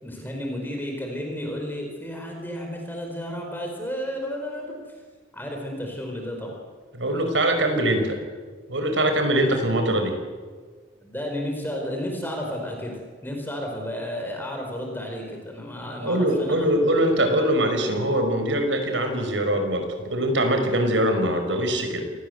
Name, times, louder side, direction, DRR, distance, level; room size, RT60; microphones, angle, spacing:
voice 1, 0.0-4.8 5.3-6.6 11.0-16.7, equal, 10° left, 1 dB, 4.9 m, -32 dB
voice 2, 6.9-8.2 8.7-10.2 16.0-22.0, right 1 dB, 90° right, 6 dB, 5.4 m, -22 dB
28.5 x 19.5 x 8.1 m, 1.5 s
head